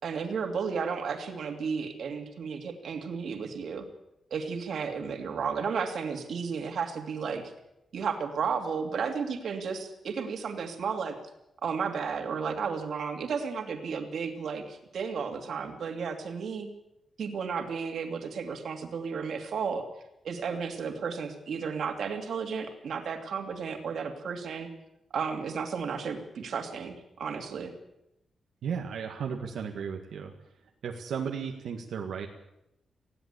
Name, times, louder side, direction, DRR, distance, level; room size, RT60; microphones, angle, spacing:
voice 1, 0.0-3.9 4.3-7.4 7.9-11.2 11.6-16.7 17.2-19.9 20.2-24.7 25.1-27.7, right 6 dB, 60° right, 4 dB, 2.8 m, -33 dB
voice 2, 28.6-30.3 30.8-32.3, right 6 dB, 85° right, 1 dB, 1.9 m, -34 dB
20.0 x 16.0 x 8.3 m, 0.85 s
wide cardioid pair, 175°, 0 cm